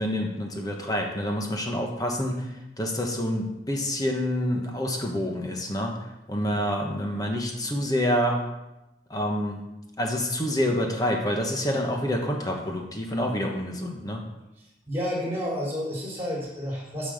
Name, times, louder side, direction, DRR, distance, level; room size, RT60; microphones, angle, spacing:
voice 1, 0.0-2.5 2.8-5.9 6.3-8.4 9.1-9.6 10.0-14.2, equal, 20° left, 1 dB, 1.2 m, -27 dB
voice 2, 14.6-17.1, equal, 15° right, -5 dB, 4.0 m, -31 dB
9.5 x 5.3 x 6.5 m, 0.97 s
head